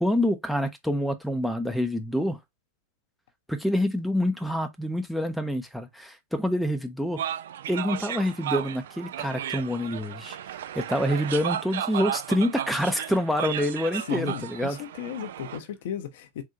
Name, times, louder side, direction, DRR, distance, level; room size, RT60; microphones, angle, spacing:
voice 1, 0.0-2.4 3.5-7.2 7.7-10.4 10.8-14.8, equal, ahead, 0.6 m, -27 dB
sound 1, 7.2-15.6, right 10 dB, 60° right, 0.3 m, -34 dB
voice 2, 14.1-16.4, left 9 dB, 55° left, 0.6 m, -35 dB
3.8 x 2.4 x 2.7 m
figure-of-eight pair, 90°, 0 cm